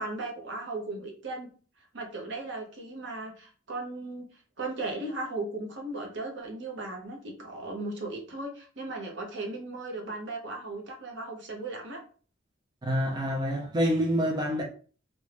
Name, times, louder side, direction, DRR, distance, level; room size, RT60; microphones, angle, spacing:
voice 1, 0.0-1.5 1.9-12.0, right 2 dB, 65° right, 0.8 m, -37 dB
voice 2, 12.8-14.6, equal, 20° right, 0.4 m, -27 dB
2.5 x 2.2 x 3.2 m
head